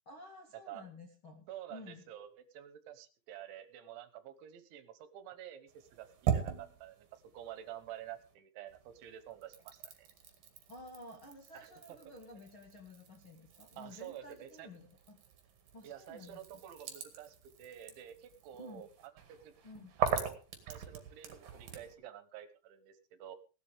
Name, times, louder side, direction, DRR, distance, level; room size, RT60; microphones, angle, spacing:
voice 1, 0.0-2.0 10.7-15.2 15.7-16.4 18.5-18.8 19.6-19.9, left 2 dB, 50° left, 2 dB, 1.5 m, -52 dB
voice 2, 1.5-10.1 12.1-12.2 13.8-14.7 15.8-18.9 19.3-19.5 20.0-20.4 20.7-23.4, right 11 dB, 75° right, 11 dB, 3.3 m, -49 dB
sound 1, 5.7-8.3 8.7-21.9, right 8 dB, 50° right, 3.4 m, -41 dB
18.0 x 12.0 x 3.5 m, 0.34 s
omnidirectional pair, 5.8 m